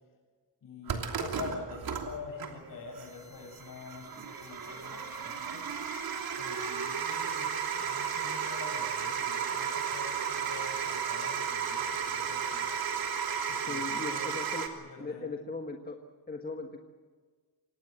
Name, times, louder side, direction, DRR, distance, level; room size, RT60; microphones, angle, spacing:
voice 1, 0.6-5.7 6.4-12.7 13.5-15.3, left 4 dB, 50° left, 3 dB, 8.0 m, -46 dB
sound 1, 0.9-14.7, right 7 dB, 55° right, 3.0 m, -34 dB
sound 2, 3.0-11.1, left 2 dB, 5° right, 7.7 m, -59 dB
voice 2, 13.7-14.7 15.0-16.0 16.3-16.8, left 3 dB, 20° left, 3 dB, 1.5 m, -38 dB
27.0 x 19.0 x 7.7 m, 1.5 s
cardioid pair, 155°, 42 cm